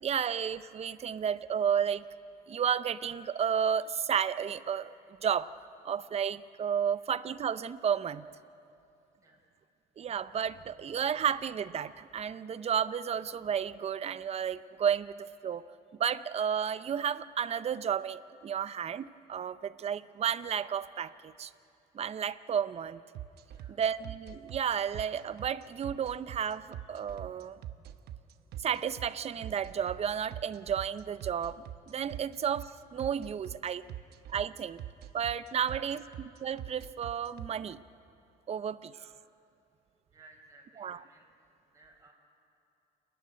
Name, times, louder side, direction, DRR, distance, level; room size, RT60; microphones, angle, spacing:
voice 1, 0.0-2.0 2.5-4.9 5.2-5.5 5.8-8.3 10.0-15.6 15.9-21.5 21.9-23.0 23.8-27.6 28.6-33.8 34.3-34.8 35.1-36.0 36.4-37.8 38.5-38.9 40.8-41.0, right 8 dB, 40° right, 15 dB, 0.6 m, -32 dB
sound 1, 23.1-37.5, right 12 dB, 70° right, 0.9 m, -43 dB
voice 2, 33.7-34.0 35.6-36.0 38.8-39.2 40.1-41.3 41.6-42.1, right 2 dB, 20° right, -1 dB, 5.3 m, -59 dB
28.5 x 11.0 x 9.6 m, 2.7 s
cardioid pair, 110°, 17 cm